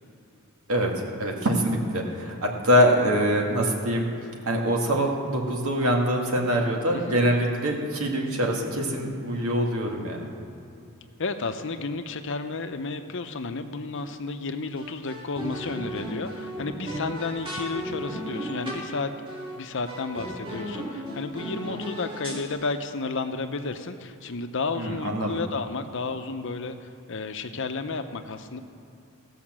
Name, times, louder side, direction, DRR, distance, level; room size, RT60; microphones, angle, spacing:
voice 1, 1.2-4.1 4.5-10.3 24.8-25.4, equal, 80° right, 0 dB, 1.9 m, -24 dB
voice 2, 6.9-7.3 11.2-19.1 19.5-28.6, left 3 dB, 60° left, 8 dB, 0.7 m, -32 dB
sound 1, 13.9-14.3 14.8-18.9 19.3-19.6 19.9-22.5, equal, 25° right, 2.3 m, -35 dB
16.0 x 5.7 x 7.4 m, 2.7 s
head